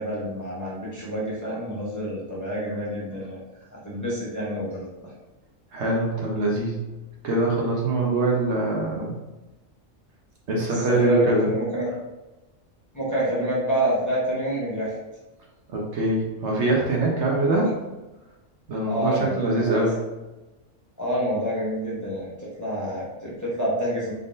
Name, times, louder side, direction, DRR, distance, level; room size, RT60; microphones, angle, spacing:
voice 1, 0.0-3.4 3.7-4.9 10.7-11.9 12.9-14.9 17.5-17.6 18.9-19.8 21.0-22.3 22.6-24.1, right 1 dB, 15° left, -7 dB, 0.7 m, -27 dB
voice 2, 5.7-6.8 7.2-9.1 10.5-11.5 15.7-17.7 18.7-20.0, right 2 dB, 65° right, -2 dB, 1.1 m, -23 dB
3.8 x 3.6 x 2.5 m, 1.1 s
omnidirectional pair, 1.4 m